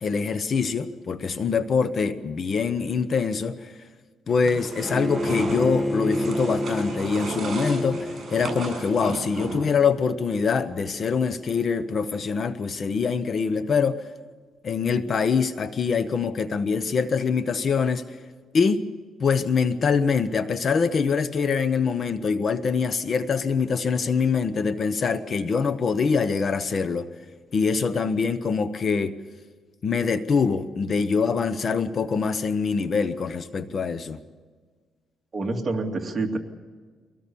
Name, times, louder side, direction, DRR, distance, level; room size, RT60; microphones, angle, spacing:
voice 1, 0.0-3.7 4.3-14.0 14.6-18.0 18.5-18.8 19.2-27.1 27.5-29.2 29.8-34.2, left 5 dB, 40° left, 0.9 m, -24 dB
Spanishblind closing, 4.4-9.8, right 3 dB, 40° right, 7.2 m, -35 dB
Bowed string instrument, 4.8-9.9, equal, 5° left, 1.1 m, -30 dB
voice 2, 35.3-36.4, right 3 dB, 25° right, 2.4 m, -27 dB
23.5 x 18.0 x 7.0 m
cardioid pair, 135°, 0 cm